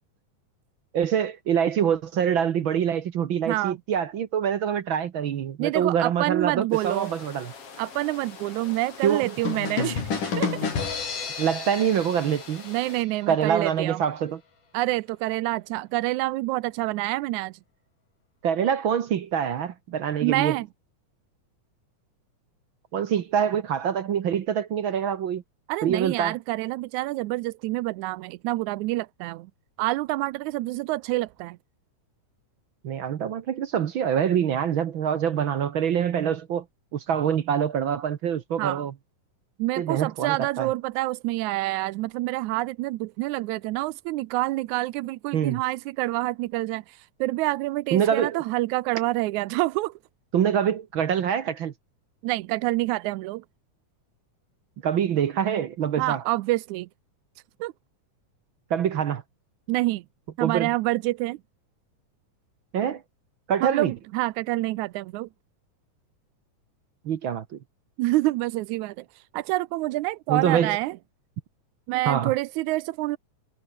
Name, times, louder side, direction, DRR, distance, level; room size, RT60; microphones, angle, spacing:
voice 1, 0.9-7.5 9.0-9.3 11.4-12.6 13.3-14.4 18.4-20.6 22.9-25.4 25.8-26.3 32.8-36.6 36.9-38.9 39.8-40.7 45.3-45.6 47.9-48.4 50.3-51.7 54.8-56.2 58.7-59.2 60.4-60.7 62.7-63.0 63.5-63.9 67.0-67.6 70.3-70.8 72.1-72.3, right 8 dB, 65° right, 1.2 m, -25 dB
voice 2, 3.5-3.8 5.6-7.1 7.8-10.5 12.7-14.0 14.7-17.6 20.2-20.7 25.7-29.5 29.8-31.6 38.6-38.8 39.6-49.9 52.2-53.4 56.0-56.9 57.6-57.7 59.7-60.0 60.4-61.4 63.6-65.3 68.0-71.0 71.9-73.2, right 18 dB, 80° right, 1.9 m, -27 dB
sound 1, 6.7-13.0, left 5 dB, 45° left, 4.2 m, -45 dB
sound 2, 9.5-13.2, left 5 dB, 80° left, 6.2 m, -30 dB
omnidirectional pair, 3.6 m